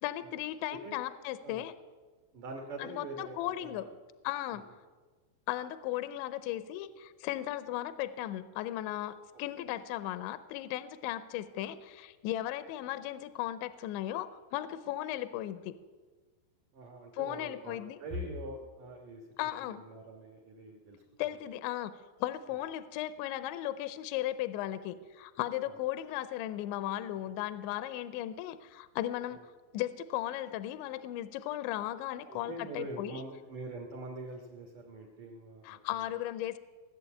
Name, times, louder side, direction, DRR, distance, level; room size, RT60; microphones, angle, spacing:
voice 1, 0.0-1.7 2.8-3.9 4.2-4.7 5.5-15.7 17.1-18.0 19.4-19.8 21.2-21.9 22.2-29.4 29.7-33.2 35.6-36.6, left 13 dB, 80° left, 12 dB, 2.7 m, -36 dB
voice 2, 0.8-1.2 1.4-1.7 2.3-3.9 4.5-4.6 16.7-21.0 32.3-36.0, right 1 dB, 70° right, 2 dB, 2.0 m, -44 dB
18.5 x 7.3 x 8.8 m, 1.4 s
omnidirectional pair, 5.7 m